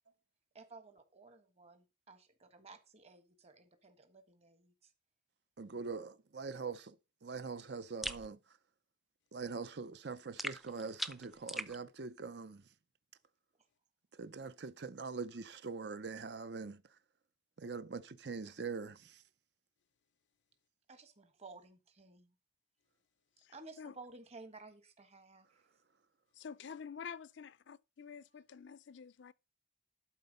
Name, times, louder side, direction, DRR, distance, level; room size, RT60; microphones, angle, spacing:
voice 1, 0.5-4.9 20.9-22.3 23.5-25.7, right 3 dB, 35° right, 1.5 m, -55 dB
voice 2, 5.6-7.0 7.2-8.4 9.3-12.6 14.2-16.8 17.6-19.2, right 4 dB, 60° right, 0.6 m, -43 dB
sound 1, 8.0-8.3 10.4-11.8, equal, ahead, 0.5 m, -40 dB
voice 3, 23.4-23.9 26.4-29.3, left 6 dB, 70° left, 0.4 m, -49 dB
11.5 x 4.3 x 5.3 m
head